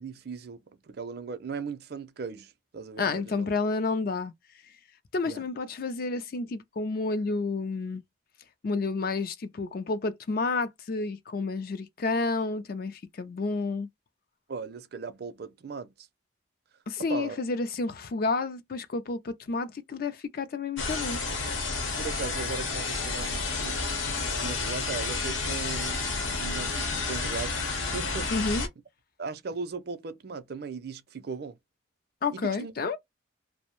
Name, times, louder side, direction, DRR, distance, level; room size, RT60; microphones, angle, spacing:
voice 1, 0.0-3.5 5.2-5.5 14.5-16.1 17.1-17.4 22.0-23.8 24.4-26.0 26.4-28.3 29.2-31.6 32.3-33.0, right 5 dB, 55° right, 0.5 m, -38 dB
voice 2, 3.0-4.3 5.1-8.0 8.6-13.9 16.9-21.2 28.3-28.7 32.2-33.0, left 3 dB, 50° left, 0.4 m, -30 dB
sound 1, 20.8-28.7, left 3 dB, 85° left, 0.9 m, -30 dB
2.5 x 2.0 x 2.9 m
head